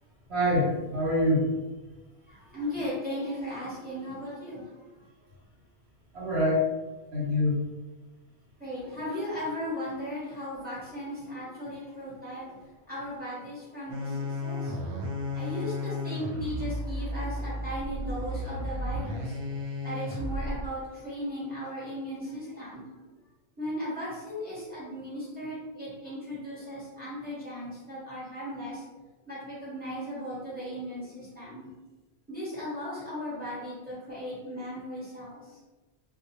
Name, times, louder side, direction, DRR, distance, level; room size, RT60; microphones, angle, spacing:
voice 1, 0.3-1.6 6.1-6.6 7.1-7.6, left 1 dB, 70° right, -5 dB, 1.2 m, -25 dB
voice 2, 2.3-5.0 8.6-12.6 12.9-14.8 15.3-19.4 19.8-22.8 23.6-28.8 29.3-31.7 32.3-35.6, equal, 10° right, -9 dB, 1.0 m, -37 dB
sound 1, 13.9-20.7, left 1 dB, 90° right, 0.9 m, -33 dB
2.3 x 2.1 x 2.9 m, 1.2 s
omnidirectional pair, 1.1 m